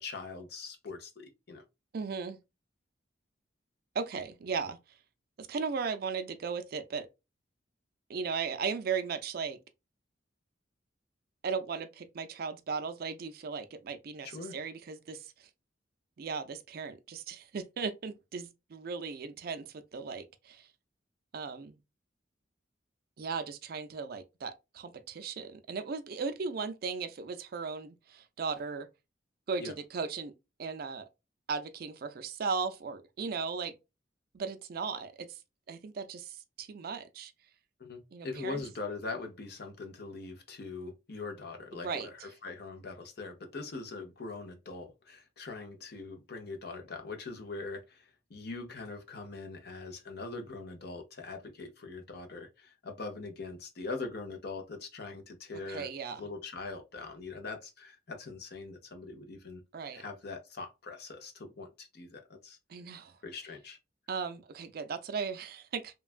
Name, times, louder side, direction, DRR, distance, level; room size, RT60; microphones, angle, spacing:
voice 1, 0.0-1.6 14.2-14.5 29.6-29.7 37.8-59.6 59.9-62.6 63.2-63.8, left 3 dB, 55° left, 0.7 m, -42 dB
voice 2, 1.9-2.4 3.9-4.8 5.4-7.1 8.1-9.6 11.4-15.5 16.2-20.7 21.3-21.8 23.2-28.9 29.5-30.3 30.6-31.1 31.5-33.8 34.3-35.4 35.7-37.3 38.1-38.6 41.7-42.1 55.7-56.2 59.7-60.1 62.7-63.2 64.1-65.9, right 5 dB, 50° right, 0.4 m, -37 dB
3.1 x 2.3 x 2.4 m
head